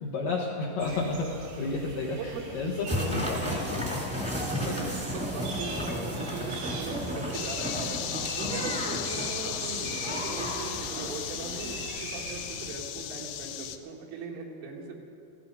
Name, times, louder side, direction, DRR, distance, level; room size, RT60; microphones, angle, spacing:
voice 1, 0.0-4.4 4.7-5.0 8.5-8.6, left 3 dB, 70° left, -3 dB, 2.1 m, -32 dB
sound 1, 0.8-12.7, right 2 dB, 70° right, 1.4 m, -42 dB
voice 2, 2.2-2.6 4.6-8.0 8.4-15.0, right 4 dB, 90° right, 0 dB, 4.4 m, -39 dB
sound 2, 2.9-11.9, equal, 5° right, 1.1 m, -34 dB
sound 3, 7.3-13.8, left 11 dB, 90° left, 2.5 m, -36 dB
16.0 x 14.0 x 5.5 m, 2.5 s
omnidirectional pair, 5.6 m